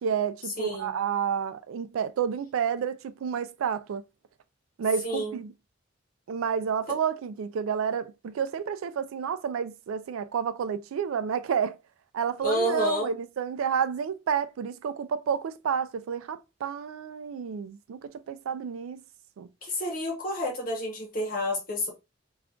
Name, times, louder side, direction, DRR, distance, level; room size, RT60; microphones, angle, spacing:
voice 1, 0.0-4.0 4.8-5.5 6.3-11.8 12.1-19.0 19.4-19.5, right 7 dB, 90° right, 0.3 m, -30 dB
voice 2, 0.6-0.9 5.0-5.4 12.4-13.1 19.6-21.9, left 1 dB, 40° left, 1.0 m, -29 dB
2.4 x 2.2 x 3.6 m
head